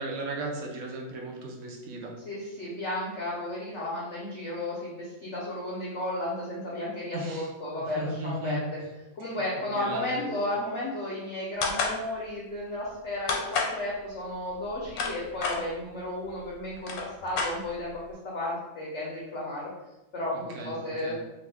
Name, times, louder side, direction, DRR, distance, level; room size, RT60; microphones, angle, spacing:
voice 1, 0.0-2.1 7.1-7.5 8.0-8.6 9.6-10.2 20.3-21.2, right 2 dB, 70° right, -1 dB, 0.7 m, -36 dB
voice 2, 2.2-8.8 9.2-18.0 18.2-19.7 20.1-21.2, left 1 dB, 65° left, -5 dB, 0.7 m, -33 dB
sound 1, 11.6-12.0 13.3-13.8 14.7-15.6 16.4-16.5 16.7-17.9, left 4 dB, 85° left, 1.3 m, -29 dB
3.0 x 2.4 x 3.3 m, 1.0 s
omnidirectional pair, 2.0 m